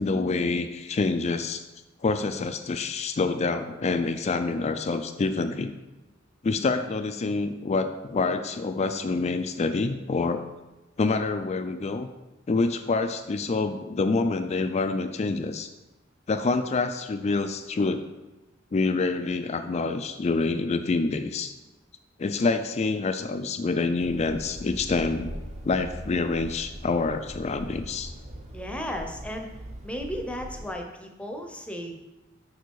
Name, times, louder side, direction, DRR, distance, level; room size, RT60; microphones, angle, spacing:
voice 1, 0.0-1.6 2.0-5.7 6.4-10.4 11.0-12.1 12.5-15.7 16.3-18.0 18.7-21.5 22.2-25.3 25.6-28.1, left 3 dB, 35° left, 8 dB, 0.4 m, -27 dB
sound 1, 24.0-30.7, equal, 35° right, 0.9 m, -40 dB
voice 2, 28.5-29.5 29.8-32.0, equal, 5° left, 3 dB, 0.7 m, -35 dB
6.8 x 5.0 x 4.7 m, 1.0 s
head